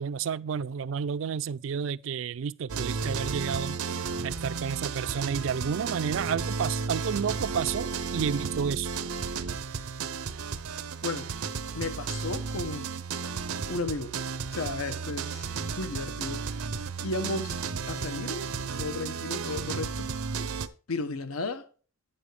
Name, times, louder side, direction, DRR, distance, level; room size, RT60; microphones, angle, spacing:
voice 1, 0.0-3.8 4.2-8.9, right 7 dB, 60° right, 0.3 m, -31 dB
sound 1, 2.7-20.7, right 5 dB, 90° right, 0.7 m, -33 dB
voice 2, 11.7-12.9 13.7-14.2 14.5-16.5 17.0-17.6 17.9-18.5 18.8-20.1 20.9-21.7, left 3 dB, 80° left, 0.8 m, -34 dB
9.2 x 6.9 x 3.2 m
head